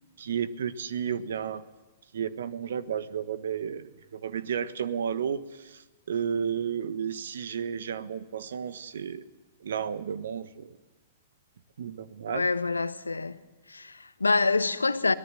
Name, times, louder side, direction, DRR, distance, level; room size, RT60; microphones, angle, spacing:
voice 1, 0.2-1.6 2.1-9.2 9.6-10.8 11.8-12.5, right 7 dB, 65° right, 1.3 m, -32 dB
voice 2, 12.3-13.4 13.7-15.1, left 3 dB, 85° left, 1.1 m, -26 dB
24.0 x 18.5 x 7.6 m
figure-of-eight pair, 110°, 0 cm